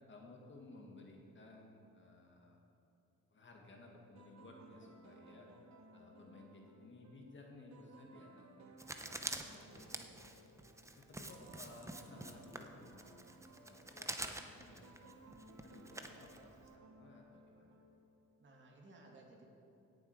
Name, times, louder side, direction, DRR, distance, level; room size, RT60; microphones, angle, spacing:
voice 1, 0.1-2.6 3.3-5.5 5.9-9.9 11.0-13.3 13.6-17.8, left 2 dB, 40° left, 0 dB, 1.9 m, -58 dB
sound 1, 4.2-18.4, right 2 dB, 65° right, 1.3 m, -61 dB
Writing, 8.8-16.7, right 2 dB, 10° right, 0.8 m, -47 dB
voice 2, 9.9-10.4 18.4-19.5, right 2 dB, 40° right, -1 dB, 2.6 m, -60 dB
17.0 x 7.5 x 4.8 m, 2.7 s
cardioid pair, 90°, 30 cm